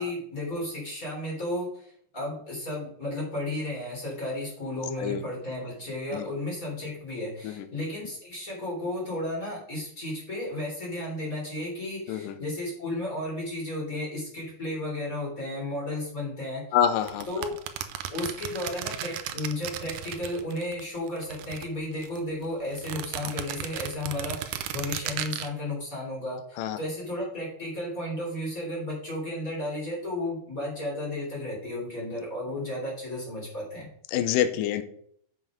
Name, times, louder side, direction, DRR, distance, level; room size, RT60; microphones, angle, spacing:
voice 1, 0.0-16.6 17.3-17.6 18.1-33.9, left 1 dB, 20° left, -3 dB, 3.7 m, -33 dB
voice 2, 16.7-17.3 26.6-26.8 34.1-34.8, left 9 dB, 75° left, 10 dB, 2.3 m, -26 dB
sound 1, 17.0-20.8 21.1-22.2 22.7-25.5, right 11 dB, 80° right, 1.8 m, -35 dB
7.8 x 7.3 x 5.1 m, 0.64 s
omnidirectional pair, 4.3 m